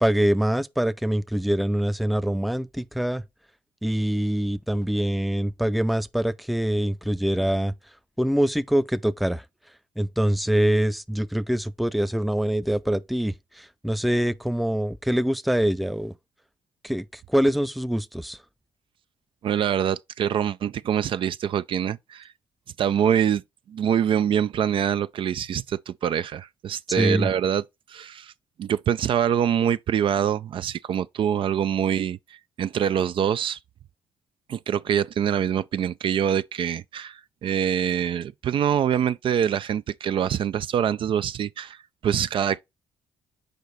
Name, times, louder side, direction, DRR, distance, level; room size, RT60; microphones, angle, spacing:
voice 1, 0.0-3.2 3.8-7.7 8.2-9.4 10.0-16.1 16.8-18.4 26.9-27.3, right 1 dB, ahead, 0.5 m, -24 dB
voice 2, 19.4-22.3 22.8-23.4 23.7-27.6 27.9-28.3 28.6-32.2 32.6-33.6 34.5-41.8 42.0-42.7, right 9 dB, 55° right, 0.3 m, -24 dB
6.6 x 4.7 x 3.9 m
supercardioid pair, 55°, 10 cm